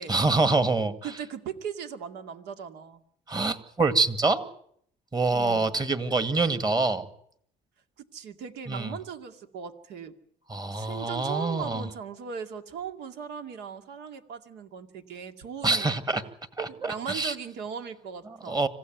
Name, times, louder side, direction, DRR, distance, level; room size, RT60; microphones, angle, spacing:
voice 1, 0.1-1.0 3.3-4.5 5.1-7.1 8.7-8.9 10.5-11.9 15.6-16.2 16.6-17.3 18.3-18.7, right 3 dB, 25° right, 10 dB, 2.0 m, -26 dB
voice 2, 1.0-3.0 5.3-5.7 8.0-10.2 10.7-16.0 16.7-18.6, right 7 dB, 80° right, 7 dB, 2.3 m, -38 dB
26.0 x 16.0 x 9.3 m, 0.68 s
cardioid pair, 110°, 17 cm